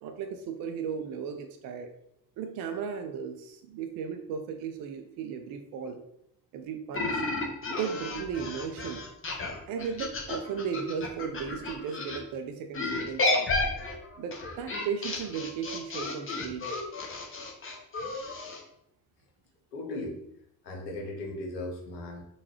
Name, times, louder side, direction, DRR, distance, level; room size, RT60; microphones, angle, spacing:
voice 1, 0.0-1.9 2.4-6.0 6.5-7.2 7.7-9.1 9.7-13.5 14.2-16.7, right 7 dB, 45° right, 6 dB, 0.4 m, -36 dB
sound 1, 6.9-12.2 12.7-18.6, left 2 dB, 25° left, 0.7 m, -32 dB
voice 2, 19.7-20.2 20.6-22.2, left 2 dB, 80° left, 1 dB, 0.8 m, -37 dB
3.8 x 2.2 x 2.9 m, 0.76 s
figure-of-eight pair, 40°, 50 cm